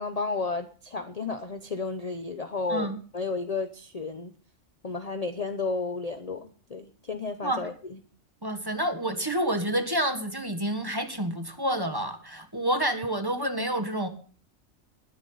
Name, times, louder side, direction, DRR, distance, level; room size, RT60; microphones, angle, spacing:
voice 1, 0.0-2.9 3.1-4.3 4.8-7.7, left 4 dB, 35° left, 8 dB, 0.8 m, -32 dB
voice 2, 8.4-14.1, right 1 dB, 15° right, 7 dB, 1.7 m, -28 dB
20.5 x 9.8 x 4.0 m, 0.42 s
omnidirectional pair, 1.4 m